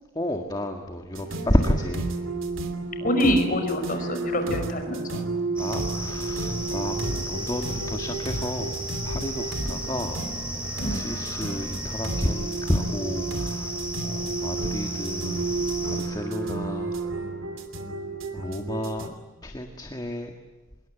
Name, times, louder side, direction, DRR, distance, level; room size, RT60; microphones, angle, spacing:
voice 1, 0.2-2.1 5.6-10.2 10.8-15.5 15.8-16.9 18.3-19.2 19.4-20.3, equal, 20° left, 4 dB, 1.8 m, -30 dB
sound 1, 1.1-19.1, right 3 dB, 70° right, 3.0 m, -32 dB
voice 2, 3.0-5.2 10.8-11.0, equal, 40° left, 6 dB, 5.2 m, -25 dB
sound 2, 5.6-16.0, equal, 5° right, 7.0 m, -34 dB
26.0 x 22.0 x 9.2 m, 1.2 s
head